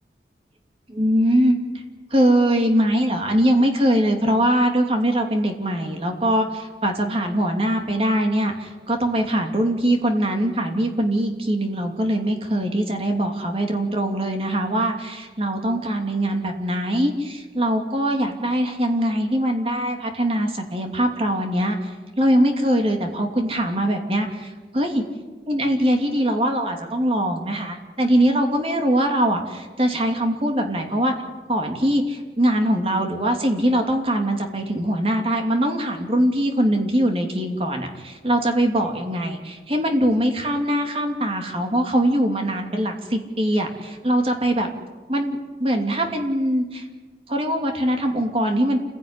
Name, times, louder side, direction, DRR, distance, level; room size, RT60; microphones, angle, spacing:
voice 1, 0.9-1.6 2.1-21.9 22.2-25.0 25.5-31.1 31.5-44.7 45.1-46.8 47.3-48.8, right 1 dB, 30° right, 3 dB, 2.9 m, -22 dB
28.0 x 16.5 x 9.9 m, 1.4 s
head